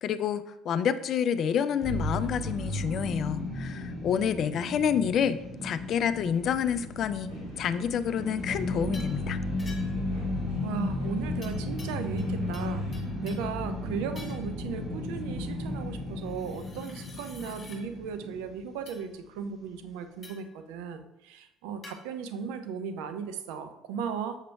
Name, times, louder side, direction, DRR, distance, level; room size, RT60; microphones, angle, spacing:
voice 1, 0.0-7.3 7.6-9.4, left 8 dB, 45° left, 13 dB, 0.4 m, -28 dB
sound 1, 1.8-19.0, left 2 dB, 30° right, 2.0 m, -34 dB
sound 2, 7.3-12.9, equal, 85° right, 2.3 m, -49 dB
sound 3, 8.9-9.2 9.6-10.1 11.4-12.3 12.5-13.5 14.1-14.5 16.2-17.8 18.9-19.0 20.2-20.5 21.8-22.0, left 2 dB, 25° left, 1.9 m, -49 dB
voice 2, 10.6-12.8 13.2-24.4, right 6 dB, 65° right, 8 dB, 0.5 m, -36 dB
7.2 x 6.6 x 2.3 m, 0.89 s
figure-of-eight pair, 55°, 0 cm